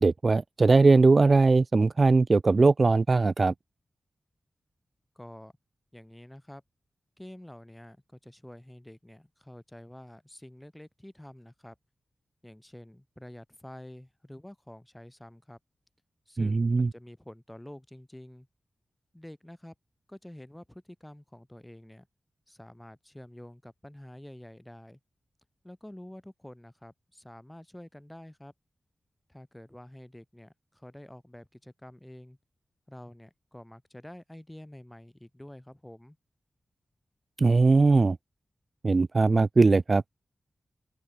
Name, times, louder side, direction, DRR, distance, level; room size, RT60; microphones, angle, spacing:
voice 1, 0.0-3.5 16.4-16.9 37.4-38.2 38.8-40.0, right 3 dB, 40° right, 0.5 m, -20 dB
voice 2, 5.1-5.5 5.9-6.6 7.2-11.7 12.4-15.6 16.3-18.5 19.1-19.7 20.1-22.1 22.5-25.0 25.6-28.5 29.3-32.4 32.9-36.2, left 1 dB, 10° left, 6.5 m, -48 dB
open air
wide cardioid pair, 105°, 0 cm